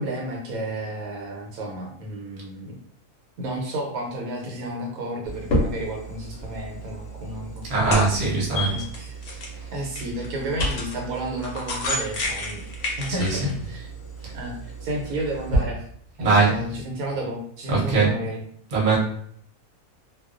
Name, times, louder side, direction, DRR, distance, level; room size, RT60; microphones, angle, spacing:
voice 1, 0.0-2.8 3.4-9.2 9.7-12.6 13.0-13.9 14.3-15.8 16.2-18.4, right 1 dB, 80° right, -1 dB, 1.1 m, -32 dB
sound 1, 5.3-15.6, equal, 60° left, 0.7 m, -30 dB
voice 2, 7.7-8.8 9.3-9.7 13.2-13.4 16.2-16.5 17.7-18.1 18.7-19.0, right 3 dB, 40° right, -5 dB, 0.8 m, -21 dB
2.3 x 2.2 x 2.4 m, 0.62 s
omnidirectional pair, 1.5 m